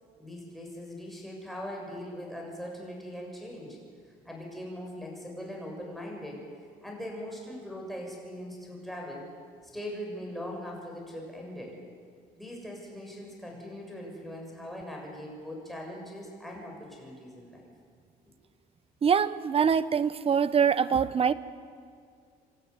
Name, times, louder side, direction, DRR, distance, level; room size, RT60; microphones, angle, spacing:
voice 1, 0.2-3.8 4.2-6.4 6.8-9.3 9.6-11.8 12.4-17.7, equal, ahead, -1 dB, 6.8 m, -40 dB
voice 2, 19.0-21.3, right 7 dB, 35° right, 15 dB, 1.0 m, -24 dB
26.5 x 13.0 x 9.8 m, 2.2 s
cardioid pair, 110°, 17 cm